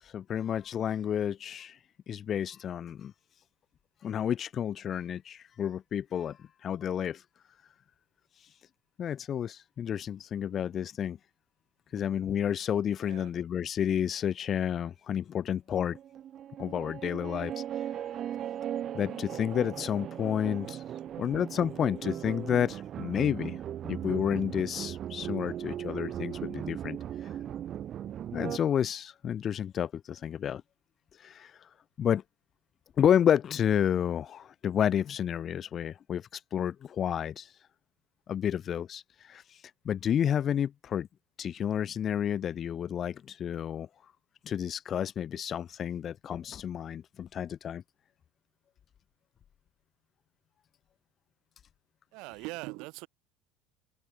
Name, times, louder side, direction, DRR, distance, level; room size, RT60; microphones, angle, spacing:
voice 1, 0.0-1.8 2.1-3.1 4.0-7.2 9.0-11.2 11.9-16.0 16.6-17.6 18.9-20.8 21.2-23.6 23.8-27.3 28.3-30.6 31.2-31.7 32.0-32.2 33.0-37.5 38.3-41.1 41.4-43.9 44.4-47.8, left 9 dB, 40° left, 0.4 m, -30 dB
sound 1, 15.7-28.6, right 10 dB, 45° right, 0.7 m, -38 dB
voice 2, 52.1-53.1, right 25 dB, 70° right, 2.3 m, -41 dB
supercardioid pair, 100°, 0 cm